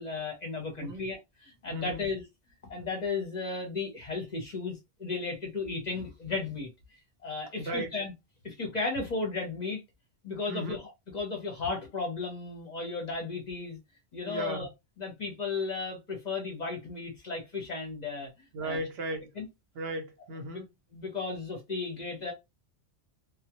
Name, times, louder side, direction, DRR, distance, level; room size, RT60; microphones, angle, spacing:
voice 1, 0.0-2.3 2.7-6.7 7.2-8.1 8.4-9.8 10.2-10.8 11.1-13.8 14.1-14.7 15.0-18.3 18.6-18.8 19.4-19.5 20.9-22.3, left 4 dB, 45° left, 0.7 m, -34 dB
voice 2, 1.7-2.1 7.6-7.9 10.5-10.8 14.2-14.7 18.5-19.3 19.7-20.7, right 1 dB, 70° right, 0.8 m, -36 dB
2.2 x 2.1 x 2.8 m
omnidirectional pair, 1.1 m